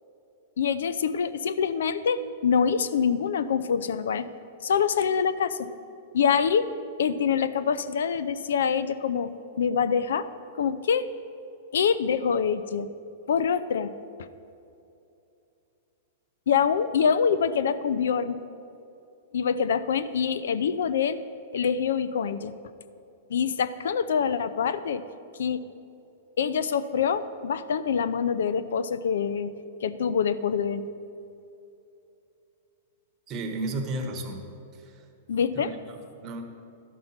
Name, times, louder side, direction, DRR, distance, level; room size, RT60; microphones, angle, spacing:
voice 1, 0.6-4.3 4.6-5.7 6.1-6.7 7.0-9.3 9.6-10.3 10.6-11.0 11.7-12.9 13.3-13.9 16.5-18.3 19.3-21.2 21.5-22.5 23.3-25.0 25.4-25.6 26.4-29.5 29.8-30.8 35.3-35.7, left 7 dB, 85° left, 14 dB, 0.5 m, -25 dB
voice 2, 33.3-34.5 34.7-35.1 35.5-36.4, right 2 dB, 30° right, 4 dB, 1.1 m, -34 dB
11.5 x 5.4 x 5.8 m, 2.7 s
hypercardioid pair, 145°, 0 cm